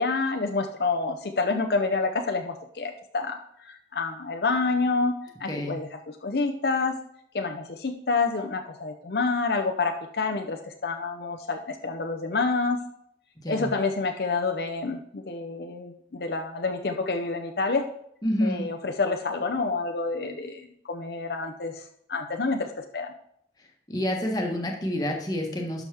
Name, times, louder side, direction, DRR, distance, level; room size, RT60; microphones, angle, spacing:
voice 1, 0.0-3.4 3.6-5.1 5.4-5.9 6.2-6.9 7.3-12.8 13.5-17.9 18.4-21.8 22.1-23.1, left 3 dB, 60° left, 4 dB, 0.7 m, -28 dB
voice 2, 5.5-5.8 13.4-13.7 18.2-18.6 23.9-25.8, left 1 dB, 20° left, 1 dB, 1.4 m, -28 dB
11.5 x 6.2 x 3.4 m, 0.70 s
head